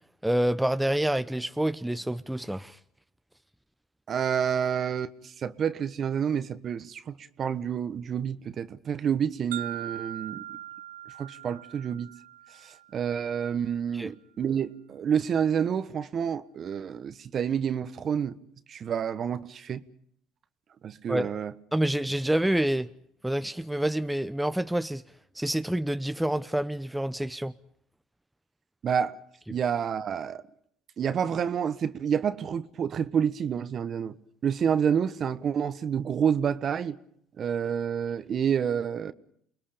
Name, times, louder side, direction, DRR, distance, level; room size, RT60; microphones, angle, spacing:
voice 1, 0.2-2.8 14.0-14.1 21.1-21.3 21.7-22.9 23.2-25.0 25.3-27.5, right 1 dB, 5° right, 0.8 m, -27 dB
voice 2, 4.1-10.4 11.2-12.1 12.6-18.4 18.7-19.8 20.8-21.5 28.8-29.2 29.5-30.4 31.0-34.1 34.4-37.0 37.4-39.1, right 8 dB, 45° right, 1.3 m, -28 dB
sound 1, 9.5-13.5, right 12 dB, 90° right, 0.9 m, -41 dB
29.0 x 21.0 x 5.2 m
supercardioid pair, 80°, 0 cm